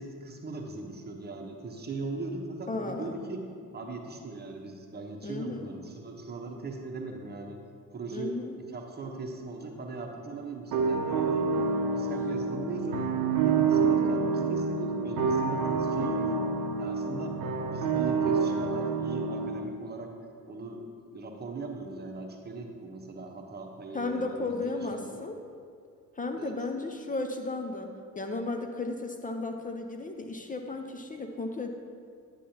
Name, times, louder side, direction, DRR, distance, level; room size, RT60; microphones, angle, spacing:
voice 1, 0.0-3.5 3.7-7.6 7.9-8.4 8.7-11.5 11.9-13.1 13.4-16.5 16.8-17.4 17.7-20.1 20.4-20.9 21.1-25.1 26.4-26.5, right 3 dB, 20° right, 2 dB, 1.1 m, -39 dB
voice 2, 2.7-3.2 5.2-5.7 8.1-8.5 23.9-25.4 26.2-31.7, left 3 dB, 20° left, 5 dB, 0.6 m, -34 dB
sound 1, 10.7-19.6, right 5 dB, 45° right, 0.8 m, -28 dB
9.9 x 8.2 x 2.8 m, 2.3 s
figure-of-eight pair, 45°, 46 cm